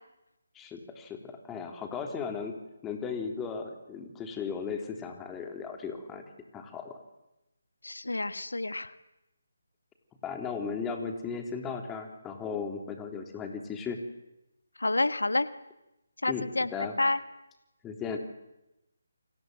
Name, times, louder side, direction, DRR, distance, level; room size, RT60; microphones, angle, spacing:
voice 1, 0.5-2.5 2.8-6.2 6.5-7.0 10.2-14.0 16.3-16.9 17.8-18.2, left 5 dB, 10° left, 4 dB, 3.4 m, -36 dB
voice 2, 7.8-8.9 14.8-15.5 16.2-16.7 17.0-17.2, left 2 dB, 90° left, 12 dB, 1.4 m, -28 dB
29.5 x 25.0 x 7.9 m, 0.93 s
figure-of-eight pair, 155°, 0 cm